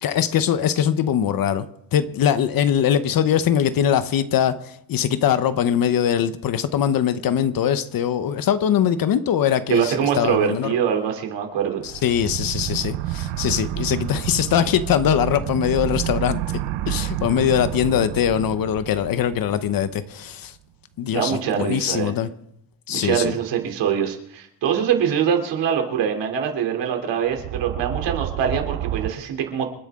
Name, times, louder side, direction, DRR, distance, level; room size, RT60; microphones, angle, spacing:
voice 1, 0.0-1.7 1.9-10.8 11.8-16.4 16.9-20.5 21.0-22.3 22.9-23.3, left 9 dB, 50° left, 12 dB, 0.9 m, -22 dB
voice 2, 9.7-11.8 21.1-22.1 22.9-29.6, right 8 dB, 70° right, 3 dB, 3.1 m, -23 dB
sound 1, 11.8-20.3 27.3-29.1, right 13 dB, 85° right, 1.0 m, -29 dB
28.5 x 9.6 x 3.7 m, 0.74 s
cardioid pair, 145°, 45 cm